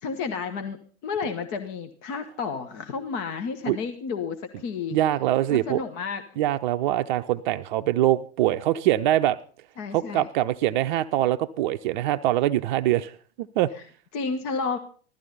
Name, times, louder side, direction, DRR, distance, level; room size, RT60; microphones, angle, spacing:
voice 1, 0.0-5.0 5.5-6.2 9.8-10.3 13.7-13.8 14.1-14.8, left 5 dB, 40° left, 8 dB, 1.5 m, -31 dB
voice 2, 4.9-5.8 6.4-9.4 9.9-13.1 13.4-13.7, right 13 dB, 45° right, 9 dB, 0.6 m, -23 dB
15.5 x 13.0 x 5.4 m, 0.43 s
figure-of-eight pair, 100°, 33 cm